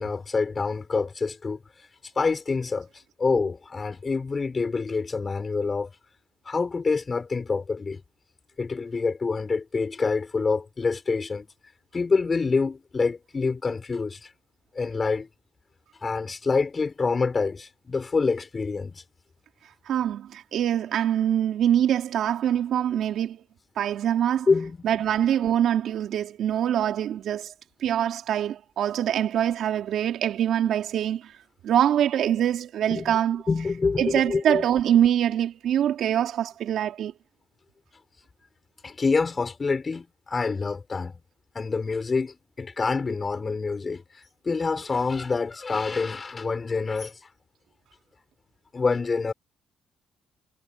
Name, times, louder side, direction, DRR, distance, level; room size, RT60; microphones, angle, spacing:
voice 1, 0.0-1.6 2.1-2.9 3.2-5.9 6.5-8.0 8.6-11.5 11.9-14.3 14.7-15.3 16.0-19.0 24.5-24.9 32.9-33.2 33.5-34.6 38.8-41.2 41.5-44.0 44.4-47.2 48.7-49.3, left 4 dB, 30° left, 6.5 m, -26 dB
voice 2, 19.9-23.4 23.8-27.5 27.8-31.3 31.6-37.1, right 10 dB, 75° right, 3.3 m, -24 dB
cardioid pair, 90°, 0 cm